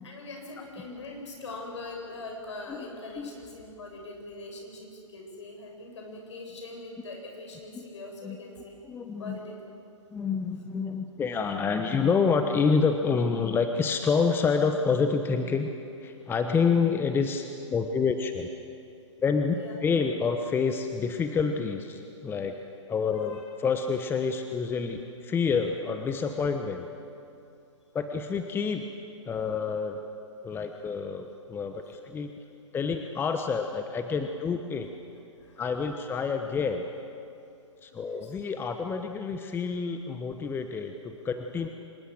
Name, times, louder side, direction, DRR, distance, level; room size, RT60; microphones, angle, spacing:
voice 1, 0.0-8.8 9.2-9.5 19.5-19.7 23.1-23.4 31.8-31.9 35.4-35.6 35.9-36.0 37.9-38.3, left 2 dB, 65° left, 1 dB, 7.6 m, -42 dB
voice 2, 8.8-9.4 10.1-15.7 16.0-18.5 19.2-22.6 22.9-26.9 27.9-28.8 29.3-30.0 30.4-32.3 32.7-34.9 35.6-36.9 37.8-41.7, left 5 dB, 15° left, 6 dB, 1.1 m, -28 dB
25.5 x 21.5 x 7.9 m, 2.6 s
figure-of-eight pair, 120°, 16 cm